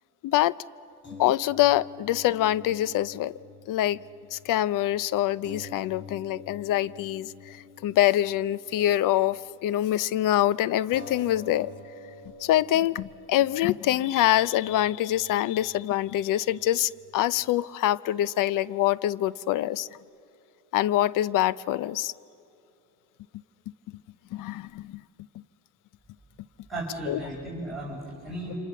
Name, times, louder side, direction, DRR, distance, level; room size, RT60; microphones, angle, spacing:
voice 1, 0.2-0.6 1.2-3.3 3.7-4.0 4.3-7.3 7.8-11.7 12.4-19.9 20.7-22.1 24.3-25.0 27.1-27.2, left 13 dB, 70° left, 0.6 m, -25 dB
sound 1, 1.0-9.6 9.9-10.0 10.9-17.5, left 3 dB, 35° left, 5.0 m, -48 dB
voice 2, 26.7-28.5, right 1 dB, ahead, 5.0 m, -35 dB
28.0 x 26.0 x 7.1 m
cardioid pair, 95°, 33 cm